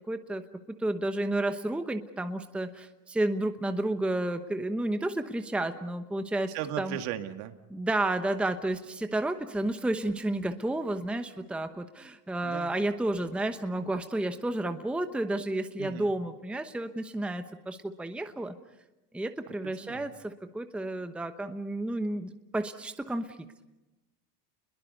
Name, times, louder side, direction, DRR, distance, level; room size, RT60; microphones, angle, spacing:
voice 1, 0.1-0.4 0.8-7.0 7.7-18.5 19.1-23.4, right 1 dB, ahead, 8 dB, 1.0 m, -31 dB
voice 2, 6.5-7.6 12.4-12.8 15.8-16.2 19.6-20.1, right 12 dB, 60° right, 7 dB, 2.0 m, -37 dB
29.0 x 22.0 x 5.4 m, 1.0 s
supercardioid pair, 120°, 48 cm